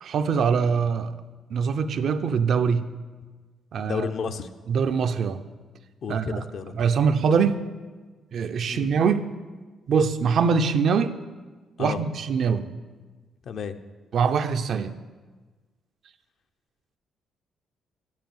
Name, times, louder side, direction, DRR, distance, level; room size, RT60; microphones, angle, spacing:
voice 1, 0.0-1.2 1.5-2.9 3.7-4.1 4.7-5.4 6.1-6.4 6.7-7.6 8.3-9.3 9.9-11.2 11.8-12.7 14.1-15.0, right 6 dB, 65° right, 9 dB, 0.5 m, -23 dB
voice 2, 3.8-4.5 6.0-6.7 8.7-8.9 11.8-12.0 13.5-13.8, left 6 dB, 60° left, 9 dB, 0.6 m, -31 dB
7.5 x 6.8 x 7.6 m, 1.3 s
cardioid pair, 90°, 0 cm